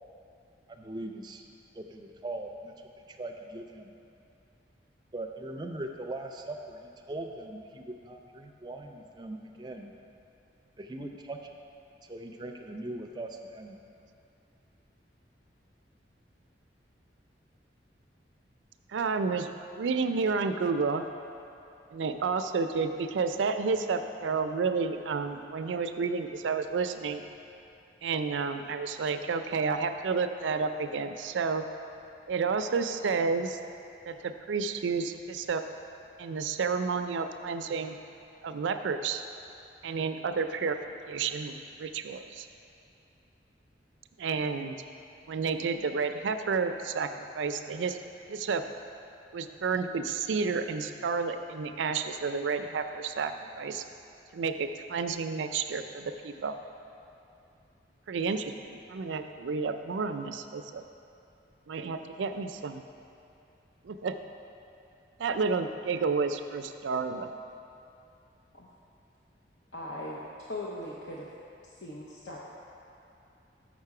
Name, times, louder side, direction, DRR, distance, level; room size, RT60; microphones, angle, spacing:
voice 1, 0.7-1.4 1.7-2.7 3.1-3.9 5.1-9.9 10.8-11.5 12.0-13.8, right 2 dB, 25° right, 3 dB, 0.4 m, -40 dB
voice 2, 18.9-19.5 19.8-21.0 21.9-27.2 28.0-31.7 32.3-33.6 34.1-35.6 36.2-38.0 38.4-39.2 39.8-40.8 41.1-42.5 44.2-44.8 45.3-48.0 48.3-48.6 49.3-53.8 54.3-56.6 58.1-60.8 61.7-62.8 63.8-64.2 65.2-67.3, right 5 dB, 90° right, 8 dB, 0.4 m, -30 dB
voice 3, 69.7-70.2 70.5-71.3 71.6-72.4, left 1 dB, 75° left, -4 dB, 0.7 m, -39 dB
6.6 x 6.1 x 4.8 m, 2.7 s
head